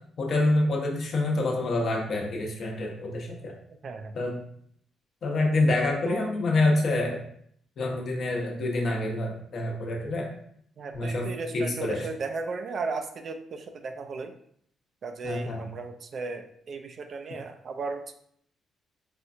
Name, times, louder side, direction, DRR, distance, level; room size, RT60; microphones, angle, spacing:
voice 1, 0.2-3.5 4.2-4.4 5.2-7.2 7.8-10.3 10.9-12.1 15.2-15.6, left 2 dB, 55° left, 0 dB, 0.9 m, -27 dB
voice 2, 3.8-4.1 6.1-6.3 10.8-14.3 15.0-18.1, right 4 dB, 50° right, 6 dB, 0.4 m, -35 dB
4.2 x 2.3 x 2.6 m, 0.66 s
cardioid pair, 90°, 0 cm